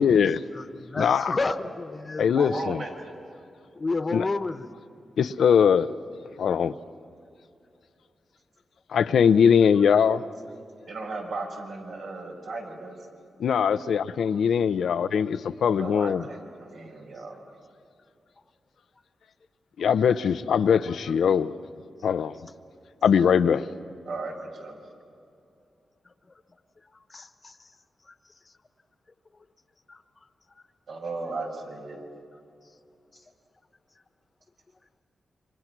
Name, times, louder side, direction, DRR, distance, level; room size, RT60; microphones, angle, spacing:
voice 1, 0.0-0.4 1.0-1.4 2.2-2.8 4.1-4.2 5.2-5.9 6.4-6.7 8.9-10.2 13.4-16.2 19.8-21.5 22.0-22.3 23.0-23.7, left 7 dB, 85° left, 0.6 m, -21 dB
voice 2, 0.6-2.7 3.7-4.7 27.1-27.5 29.9-30.0, left 3 dB, 35° left, 1.1 m, -30 dB
voice 3, 2.3-3.1 10.9-13.0 15.8-17.5 24.1-24.8 30.9-32.0, right 3 dB, 80° right, 6.1 m, -36 dB
29.0 x 25.0 x 6.1 m
cardioid pair, 75°, 0 cm